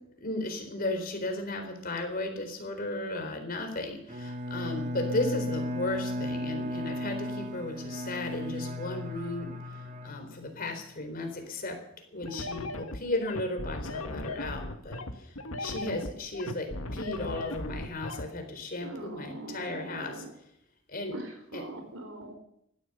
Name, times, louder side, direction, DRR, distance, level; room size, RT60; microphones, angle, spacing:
voice 1, 0.2-9.5 10.0-11.8 12.1-15.3 15.6-20.2 20.9-21.2 21.5-21.6, left 2 dB, 45° left, 5 dB, 4.1 m, -35 dB
Bowed string instrument, 4.1-10.7, left 1 dB, 35° right, 1.5 m, -35 dB
sound 1, 12.2-18.2, left 2 dB, 80° left, 1.7 m, -37 dB
voice 2, 18.8-20.3 21.1-22.3, right 2 dB, 75° right, 5 dB, 5.1 m, -41 dB
16.5 x 12.5 x 6.7 m, 0.72 s
head